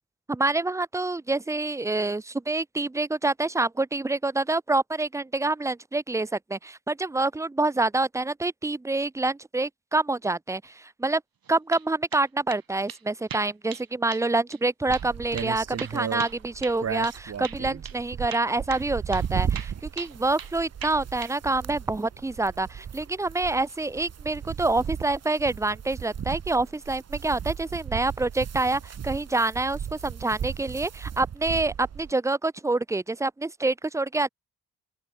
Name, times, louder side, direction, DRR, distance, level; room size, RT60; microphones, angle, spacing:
voice 1, 0.3-11.2 11.5-34.3, right 2 dB, 10° right, 0.4 m, -27 dB
sound 1, 11.4-11.8 12.1-12.6 12.9-13.0 13.3-13.9 14.1-14.3 14.5-14.6 14.9-15.1 15.4-17.2 17.4-17.6 17.8-18.0 18.3-19.3 19.5-20.5 20.8-21.4, right 8 dB, 55° right, 2.8 m, -39 dB
sound 2, 14.9-32.1, right 8 dB, 35° right, 0.8 m, -35 dB
open air
supercardioid pair, 50°, 42 cm